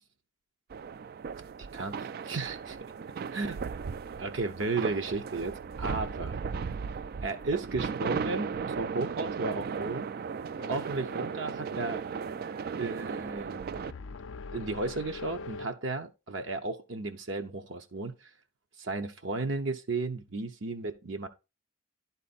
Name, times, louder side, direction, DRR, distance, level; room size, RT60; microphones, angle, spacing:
sound 1, 0.7-13.9, right 6 dB, 50° right, 0.3 m, -36 dB
voice 1, 1.7-2.8 3.3-3.6 4.2-6.4 7.2-10.1 10.7-12.0 12.8-13.9 14.5-18.1 18.8-21.3, right 3 dB, 65° right, 0.8 m, -34 dB
sound 2, 10.6-15.7, left 4 dB, 70° left, 0.4 m, -45 dB
11.0 x 4.1 x 4.1 m
head